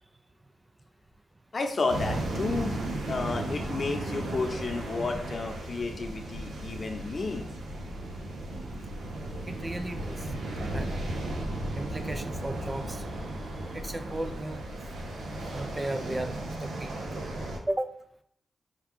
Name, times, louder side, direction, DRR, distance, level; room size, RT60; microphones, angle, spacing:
voice 1, 1.5-2.8 3.1-7.5, left 3 dB, 50° left, 4 dB, 0.8 m, -31 dB
sound 1, 1.9-17.6, right 1 dB, 90° right, 0.8 m, -35 dB
voice 2, 9.5-10.3 10.7-11.1 11.7-13.1 13.7-14.6 15.2-17.1 17.7-17.9, right 1 dB, 25° right, 8 dB, 0.4 m, -35 dB
5.8 x 2.4 x 3.5 m, 0.67 s
cardioid pair, 75°, 0 cm